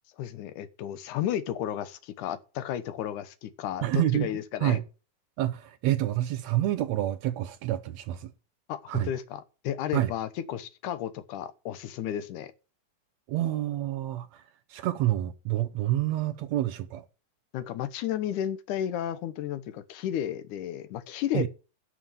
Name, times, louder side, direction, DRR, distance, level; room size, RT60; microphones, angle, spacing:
voice 1, 0.2-4.8 8.7-12.5 17.5-21.5, left 11 dB, 75° left, 2.4 m, -33 dB
voice 2, 3.8-4.3 4.6-4.8 5.4-8.3 8.9-9.1 9.9-10.1 13.3-14.4 14.7-17.0 21.3-21.5, right 14 dB, 75° right, 1.7 m, -28 dB
11.5 x 5.9 x 9.0 m
omnidirectional pair, 3.8 m